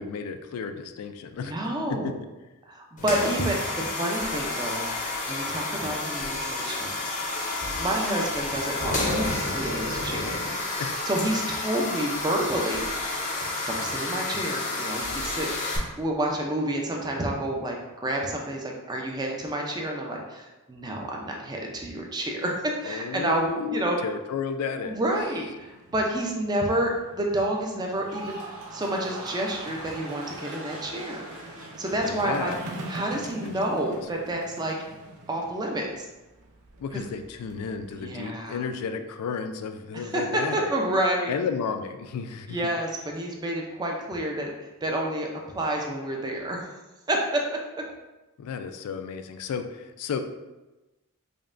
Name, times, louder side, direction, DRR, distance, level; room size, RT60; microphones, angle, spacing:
voice 1, 0.0-1.5 1.9-2.1 3.2-3.4 10.8-11.1 22.8-24.9 32.0-32.6 33.4-33.6 33.9-34.0 36.8-40.7 41.3-42.6 48.4-50.2, left 6 dB, 90° left, 8 dB, 0.3 m, -33 dB
voice 2, 1.4-2.2 2.7-4.9 5.3-6.9 7.8-10.3 11.0-12.9 13.7-15.7 16.0-17.8 18.0-22.5 22.8-24.0 24.8-31.2 31.8-32.5 32.9-34.8 35.3-36.1 37.9-38.6 39.9-40.2 40.5-41.3 42.5-44.5 44.8-45.3 45.5-46.7 47.1-47.4, right 1 dB, 20° right, 0 dB, 0.4 m, -29 dB
sound 1, 3.0-15.8, left 2 dB, 35° left, 0.6 m, -30 dB
sound 2, 24.8-38.6, right 2 dB, 80° right, 0.5 m, -45 dB
sound 3, 27.9-34.2 34.5-35.0, right 1 dB, 65° right, 1.0 m, -42 dB
5.1 x 2.1 x 2.5 m, 1.1 s
head